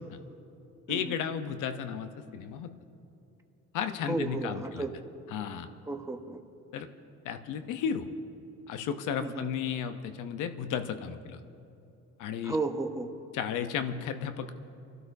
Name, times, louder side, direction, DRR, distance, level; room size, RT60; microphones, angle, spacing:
voice 1, 0.9-2.7 3.7-4.8 5.3-5.7 6.7-6.9 7.2-8.1 8.7-11.4 12.2-12.6 13.3-14.5, left 8 dB, 90° left, 8 dB, 0.8 m, -34 dB
voice 2, 4.0-5.0 5.8-6.4 9.2-9.5 12.4-13.1, right 3 dB, 10° right, 5 dB, 0.9 m, -33 dB
29.0 x 12.0 x 2.7 m, 2.7 s
cardioid pair, 90°, 30 cm